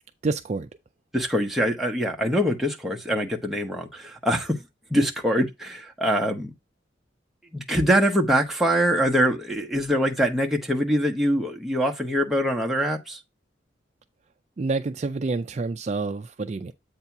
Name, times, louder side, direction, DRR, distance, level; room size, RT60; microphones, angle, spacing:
voice 1, 0.2-0.7 14.6-16.7, right 3 dB, 35° right, 0.3 m, -28 dB
voice 2, 1.1-4.6 4.9-6.5 7.5-13.2, equal, ahead, 0.8 m, -24 dB
8.0 x 2.7 x 5.8 m
head